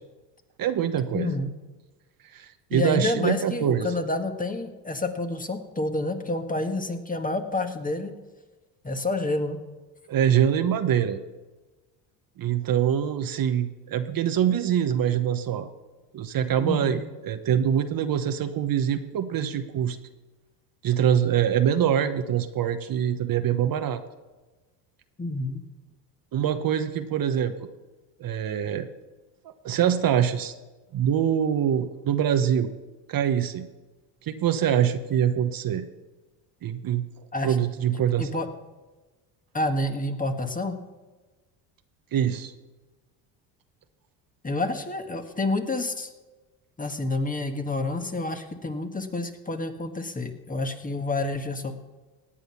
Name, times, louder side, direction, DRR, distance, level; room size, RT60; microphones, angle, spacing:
voice 1, 0.6-1.3 2.3-3.9 10.1-11.2 12.4-15.7 16.1-20.0 20.8-24.0 26.3-27.6 28.2-28.9 29.4-30.5 30.9-32.7 33.1-33.7 34.2-35.9 36.6-37.1 37.4-38.3 42.1-42.5, right 9 dB, 45° right, 9 dB, 1.1 m, -24 dB
voice 2, 1.1-1.5 2.7-8.1 8.8-9.6 16.6-17.0 25.2-25.6 37.3-37.6 38.2-38.5 39.5-40.8 44.4-46.1 46.8-51.7, left 2 dB, 15° left, 6 dB, 1.6 m, -28 dB
17.5 x 9.1 x 5.8 m, 1.2 s
supercardioid pair, 85°, 47 cm